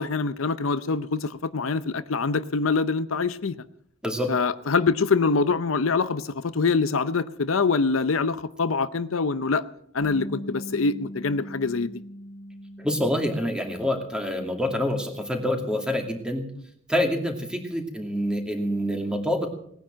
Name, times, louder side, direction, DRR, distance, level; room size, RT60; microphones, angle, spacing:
voice 1, 0.0-3.6 4.3-9.6 9.9-11.9, left 4 dB, 80° left, 14 dB, 0.7 m, -24 dB
Bass guitar, 10.0-16.2, equal, 65° right, 1.9 m, -42 dB
voice 2, 12.8-16.4 16.9-19.5, left 1 dB, 5° right, 3 dB, 2.4 m, -26 dB
19.0 x 10.0 x 7.5 m, 0.69 s
head